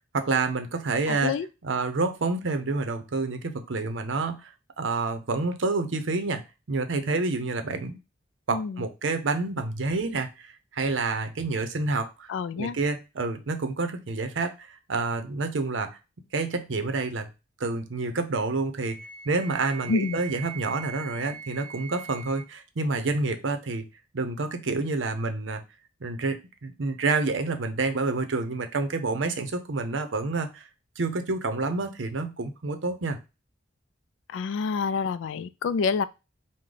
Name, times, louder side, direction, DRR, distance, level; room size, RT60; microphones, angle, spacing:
voice 1, 0.1-1.3 1.6-4.5 4.8-6.4 6.7-8.0 8.5-12.3 12.6-15.9 16.3-17.3 17.6-23.9 24.1-25.6 26.0-30.6 31.0-33.2, right 3 dB, 70° right, 0.6 m, -28 dB
voice 2, 1.1-1.5 8.5-8.8 12.3-12.8 19.9-20.2 34.3-36.1, left 5 dB, 70° left, 0.3 m, -28 dB
Wind instrument woodwind instrument, 18.8-22.5, right 7 dB, 25° right, 0.8 m, -41 dB
4.8 x 2.1 x 3.8 m
head